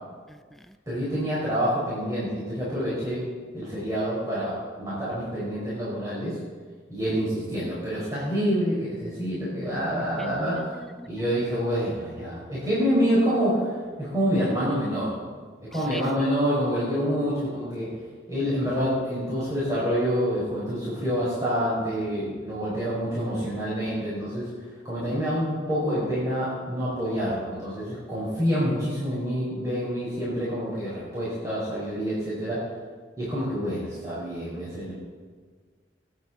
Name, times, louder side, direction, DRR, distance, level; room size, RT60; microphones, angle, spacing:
voice 1, 0.3-0.7 10.2-10.3 10.6-11.2 15.7-16.0, equal, ahead, 10 dB, 0.3 m, -43 dB
voice 2, 0.9-3.2 3.5-6.4 6.9-10.7 11.1-15.1 15.7-17.9 18.3-24.5 24.8-32.6 33.2-34.9, equal, 20° right, -9 dB, 5.0 m, -27 dB
27.0 x 9.1 x 4.2 m, 1.5 s
head